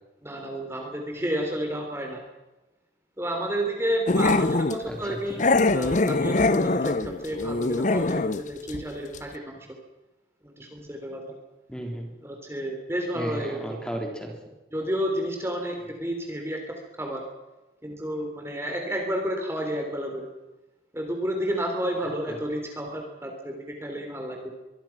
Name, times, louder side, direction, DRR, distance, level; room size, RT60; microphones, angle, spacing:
voice 1, 0.2-2.2 3.2-5.4 5.7-9.6 10.4-11.2 12.2-13.8 14.7-17.2 17.8-20.3 20.9-24.5, equal, 15° right, 2 dB, 3.4 m, -31 dB
Growling, 4.1-4.8 5.4-8.4 8.7-8.8 9.1-9.2, left 2 dB, 40° left, 0.7 m, -23 dB
voice 2, 4.9-5.4 11.7-12.1 13.1-14.4 22.3-22.4, right 1 dB, 5° left, 1 dB, 3.8 m, -34 dB
24.5 x 23.0 x 6.0 m, 1.1 s
head